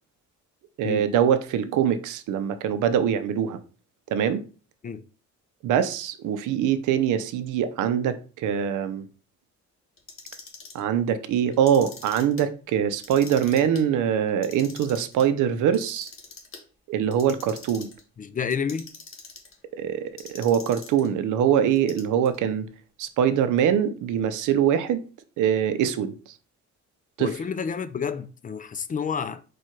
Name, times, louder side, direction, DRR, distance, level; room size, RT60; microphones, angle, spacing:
voice 1, 0.8-3.6 4.1-4.4 5.6-9.1 10.7-16.1 16.9-17.9 19.8-22.7 23.0-25.0 25.4-26.1 27.2-27.3, right 9 dB, 80° right, 0.6 m, -23 dB
Clock, 10.0-10.8 11.5-12.4 12.9-13.8 14.3-15.2 15.7-16.6 17.1-18.0 18.5-19.5 20.2-21.1 21.7-22.4, left 4 dB, 45° left, 1.4 m, -43 dB
voice 2, 18.2-18.9 27.2-29.4, left 6 dB, 30° left, 0.4 m, -30 dB
4.6 x 2.4 x 4.4 m
cardioid pair, 90°, 30 cm